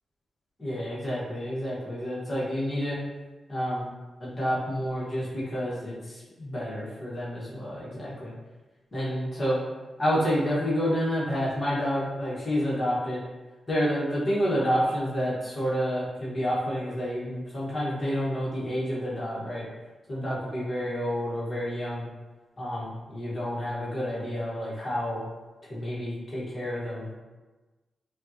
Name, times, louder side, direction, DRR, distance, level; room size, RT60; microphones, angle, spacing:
voice 1, 0.6-3.0 3.5-3.9 4.2-8.3 8.9-9.6 10.0-13.2 13.7-19.6 20.1-22.1 22.6-25.2 25.6-27.2, equal, 30° left, -7 dB, 1.1 m, -29 dB
5.1 x 2.3 x 2.7 m, 1.2 s
wide cardioid pair, 165°, 0 cm